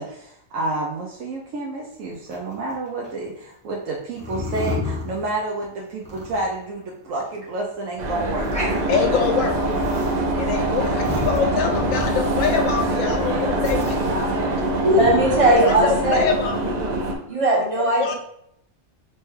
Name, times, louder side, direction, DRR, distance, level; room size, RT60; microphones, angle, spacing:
voice 1, 0.0-9.1 13.2-15.7, right 2 dB, 80° right, -3 dB, 1.0 m, -30 dB
sound 1, 2.3-3.1 4.1-5.6 6.0-6.6 7.1-7.2 7.4-7.5 7.9-8.0 8.3-9.0 9.4-10.3 10.6-13.3 13.6-14.4 14.8-15.6, left 3 dB, 5° left, 0.7 m, -32 dB
sound 2, 8.0-17.1, right 1 dB, 60° right, 0.4 m, -24 dB
voice 2, 8.9-9.6 10.4-14.0 15.5-16.7 18.0-18.1, left 7 dB, 75° left, 4 dB, 1.0 m, -24 dB
voice 3, 14.8-16.2 17.3-18.1, right 1 dB, 30° right, -3 dB, 0.8 m, -18 dB
4.2 x 2.2 x 3.2 m, 0.74 s
omnidirectional pair, 1.4 m